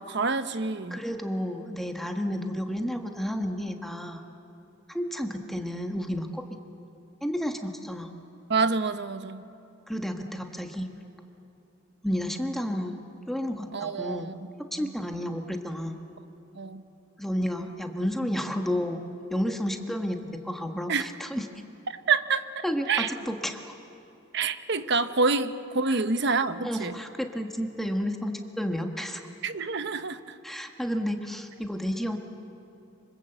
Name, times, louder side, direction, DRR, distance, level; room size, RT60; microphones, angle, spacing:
voice 1, 0.0-1.0 8.5-9.4 13.7-14.4 14.8-14.9 16.5-16.8 20.9-21.1 21.9-23.1 24.3-26.9 29.4-30.3, right 4 dB, 60° right, 11 dB, 1.0 m, -27 dB
voice 2, 0.9-4.2 4.9-6.4 7.2-8.1 9.9-10.9 12.0-13.0 13.3-14.3 14.7-16.0 17.2-19.0 19.3-21.5 22.6-23.7 25.9-26.0 26.6-29.2 30.4-32.2, equal, ahead, 4 dB, 1.4 m, -31 dB
25.5 x 25.5 x 8.0 m, 2.9 s
head